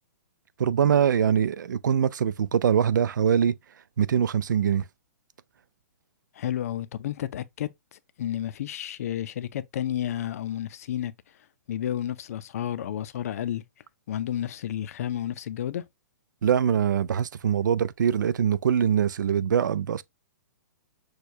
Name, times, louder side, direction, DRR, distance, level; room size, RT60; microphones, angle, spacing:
voice 1, 0.6-3.5 4.0-4.8 16.4-20.0, right 8 dB, 90° right, 0.4 m, -23 dB
voice 2, 6.4-7.7 8.2-11.1 11.7-13.6 14.1-15.8, left 11 dB, 55° left, 0.4 m, -31 dB
6.4 x 2.2 x 2.7 m
hypercardioid pair, 160°, 10 cm